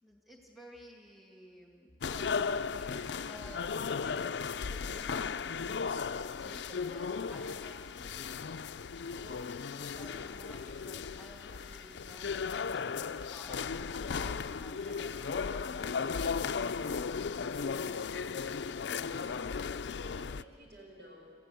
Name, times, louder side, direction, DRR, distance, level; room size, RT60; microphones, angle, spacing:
voice 1, 0.0-6.0 6.4-8.5 9.2-15.4 15.7-16.0, equal, ahead, -1 dB, 2.0 m, -54 dB
sound 1, 2.0-20.4, left 5 dB, 80° left, 0.5 m, -36 dB
sound 2, 9.8-19.8, right 1 dB, 50° right, 6.7 m, -64 dB
voice 2, 18.9-21.3, right 1 dB, 75° right, 0 dB, 6.1 m, -54 dB
30.0 x 15.5 x 8.3 m, 2.4 s
head